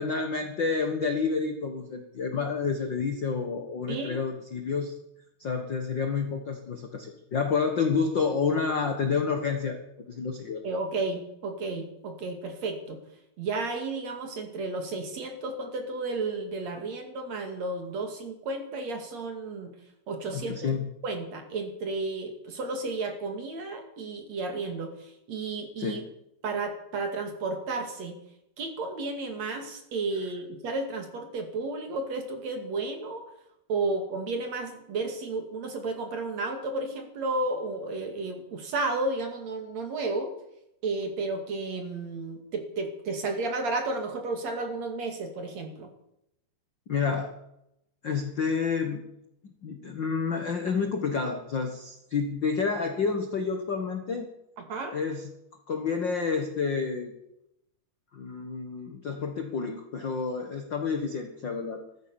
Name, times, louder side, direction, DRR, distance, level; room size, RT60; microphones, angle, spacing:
voice 1, 0.0-4.9 5.4-9.8 10.1-10.6 20.3-20.9 25.8-26.1 46.9-47.3 48.0-49.0 49.4-54.3 54.9-55.3 55.7-57.1 58.1-61.8, left 5 dB, 75° left, 5 dB, 1.0 m, -29 dB
voice 2, 10.6-13.0 13.4-19.7 20.1-20.6 21.0-26.0 26.4-28.1 28.6-33.2 33.7-40.3 40.8-45.9 54.6-55.0, right 3 dB, 50° right, 5 dB, 3.1 m, -32 dB
15.0 x 13.5 x 7.0 m, 0.80 s
omnidirectional pair, 4.6 m